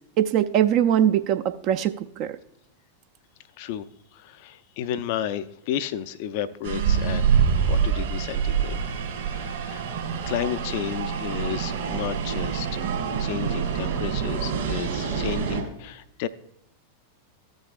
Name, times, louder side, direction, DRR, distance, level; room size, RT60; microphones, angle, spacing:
voice 1, 0.2-2.3, right 10 dB, 40° right, 9 dB, 0.4 m, -22 dB
voice 2, 4.1-7.2 7.6-8.8 9.3-9.8 10.3-12.9 13.2-16.3, left 10 dB, 50° left, 14 dB, 0.4 m, -32 dB
sound 1, 6.6-15.6, right 7 dB, 65° right, 2.4 m, -26 dB
14.5 x 6.4 x 2.4 m, 0.80 s
figure-of-eight pair, 90°, 0 cm